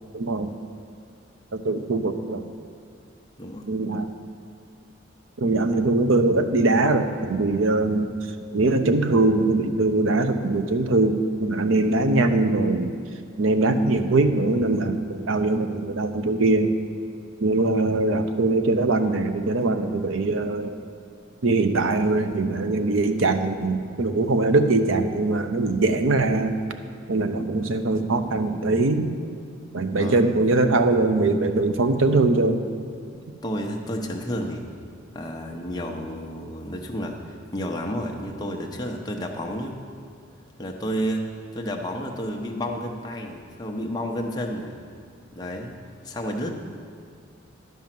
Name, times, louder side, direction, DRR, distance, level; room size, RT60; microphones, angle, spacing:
voice 1, 0.1-0.6 1.5-2.5 3.7-4.1 5.4-12.9 13.4-16.7 17.4-20.8 21.4-26.6 27.1-29.1 29.7-32.6, right 2 dB, 80° right, 8 dB, 0.7 m, -22 dB
voice 2, 33.4-34.6 35.1-39.8 40.6-41.2 41.5-44.8 45.4-45.7 46.0-46.5, equal, 20° left, 1 dB, 0.8 m, -31 dB
10.5 x 5.5 x 7.5 m, 2.2 s
head